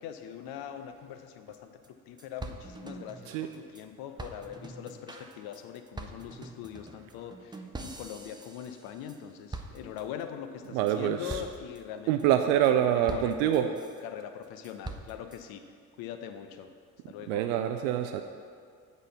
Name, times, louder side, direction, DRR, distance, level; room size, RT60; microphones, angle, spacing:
voice 1, 0.0-13.8 14.0-15.6 16.0-16.7 17.1-17.5, left 9 dB, 60° left, 8 dB, 0.7 m, -42 dB
sound 1, 1.5-1.6 1.8-1.9 2.2-3.8 4.2-9.2 9.5-10.2 10.6-10.9 11.3-11.8 12.2-12.7 13.1-14.0 14.4-15.4, right 2 dB, 10° right, 0.7 m, -44 dB
voice 2, 10.7-11.4 12.1-13.6 17.3-18.2, right 11 dB, 70° right, 6 dB, 0.5 m, -25 dB
8.1 x 4.1 x 6.6 m, 2.1 s
figure-of-eight pair, 50°, 42 cm